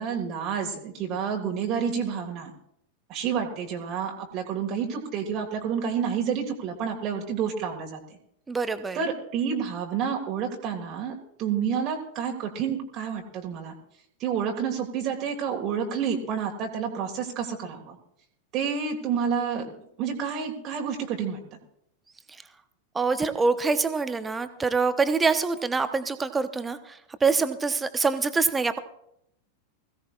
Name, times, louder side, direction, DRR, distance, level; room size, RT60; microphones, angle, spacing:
voice 1, 0.0-2.5 3.1-8.0 8.9-13.7 14.2-18.0 18.5-21.6, right 7 dB, 35° right, 1 dB, 1.8 m, -29 dB
voice 2, 8.5-9.0 22.9-28.8, right 4 dB, 15° right, 10 dB, 0.9 m, -25 dB
21.0 x 16.0 x 2.4 m, 0.74 s
figure-of-eight pair, 90°, 0 cm